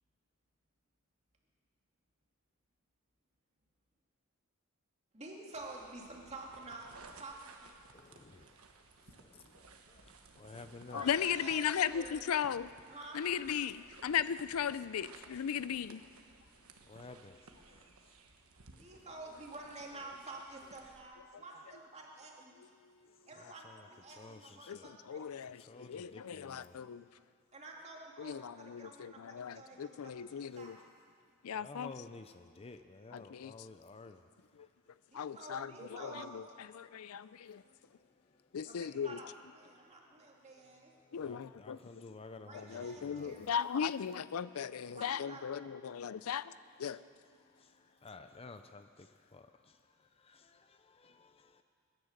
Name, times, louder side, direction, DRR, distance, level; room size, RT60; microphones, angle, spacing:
voice 1, 5.1-6.9 7.2-7.8 8.1-8.3 10.8-12.2 12.9-13.3 18.8-22.6 23.3-25.2 27.5-30.8 35.1-36.3 38.6-39.3 39.5-40.9 42.4-43.5 44.9-45.5, right 2 dB, 30° right, -1 dB, 2.4 m, -49 dB
sound 1, 5.5-21.0, right 4 dB, 90° right, 1.3 m, -59 dB
voice 2, 7.9-8.5 9.2-10.1 10.4-11.0 16.9-17.4 17.7-17.8 23.4-24.9 25.6-26.9 30.5-30.6 31.5-34.2 41.2-43.5 47.6-47.7 48.0-49.5 50.2-51.6, left 3 dB, 25° left, 9 dB, 0.5 m, -53 dB
voice 3, 10.9-12.7 13.1-16.0 22.6-23.1 23.4-23.5 24.7-27.1 28.2-30.8 31.4-31.9 33.1-33.7 34.6-34.7 35.1-37.6 38.5-39.3 41.1-41.8 42.5-47.0, left 8 dB, 90° left, 16 dB, 0.4 m, -37 dB
21.0 x 10.5 x 6.6 m, 2.2 s
head